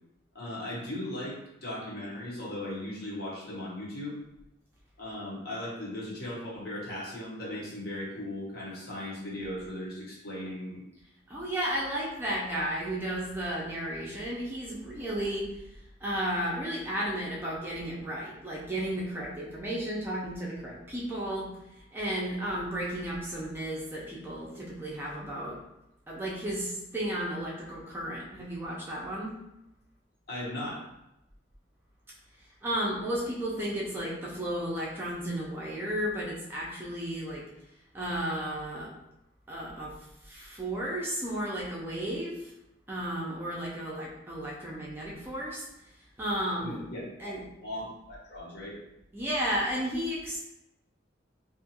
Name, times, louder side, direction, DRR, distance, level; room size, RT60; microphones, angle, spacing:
voice 1, 0.3-4.2 5.0-10.8 30.3-30.8 46.6-47.0 47.5-48.8, left 1 dB, 55° left, -5 dB, 0.9 m, -37 dB
voice 2, 11.3-15.6 16.0-21.5 21.9-25.6 26.1-29.4 32.6-37.5 37.9-38.9 39.5-39.9 40.3-42.5 42.9-45.6 46.2-46.8 47.2-47.4 49.1-50.4, equal, 10° right, -5 dB, 0.4 m, -33 dB
2.5 x 2.4 x 2.7 m, 0.88 s
head